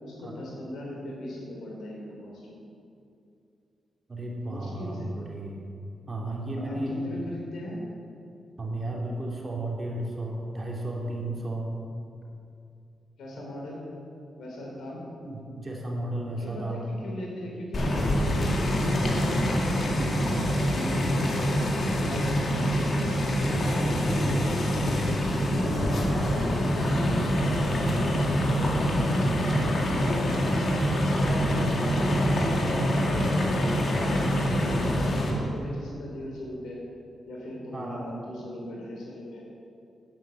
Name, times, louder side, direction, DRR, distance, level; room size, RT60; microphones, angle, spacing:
voice 1, 0.0-2.6 4.5-5.1 6.5-7.8 13.2-13.9 14.4-15.1 16.4-18.1 18.4-22.9 23.2-25.9 26.3-31.7 32.1-36.8 37.3-39.4, left 1 dB, 80° left, -2 dB, 3.5 m, -38 dB
voice 2, 4.1-5.6 6.1-6.9 8.6-11.8 15.2-16.9 22.0-22.2 26.1-26.4 37.7-38.1, right 1 dB, 35° right, -1 dB, 2.9 m, -33 dB
sound 1, 17.7-35.3, equal, 55° left, 2.3 m, -25 dB
sound 2, 24.1-30.3, left 1 dB, 5° right, 1.3 m, -39 dB
10.0 x 9.1 x 7.0 m, 2.6 s
cardioid pair, 60°, 0 cm